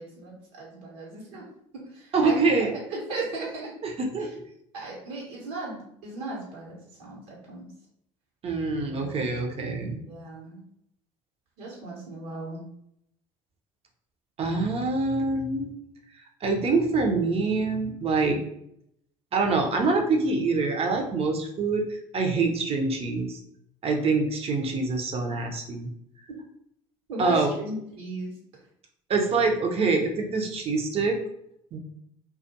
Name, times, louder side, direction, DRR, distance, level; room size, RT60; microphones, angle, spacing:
voice 1, 0.0-1.4 1.7-2.4 2.9-3.7 4.2-4.3 4.7-7.7 9.0-9.1 10.0-10.6 11.6-12.6 27.1-28.3, right 2 dB, 70° right, -4 dB, 1.1 m, -36 dB
voice 2, 2.1-2.7 3.8-4.3 8.4-10.0 14.4-15.7 16.4-18.4 19.3-23.4 23.8-25.9 27.2-27.5 29.1-31.2 31.7-31.8, right 3 dB, 35° right, 2 dB, 0.7 m, -25 dB
2.4 x 2.3 x 2.7 m, 0.73 s
hypercardioid pair, 65°, 16 cm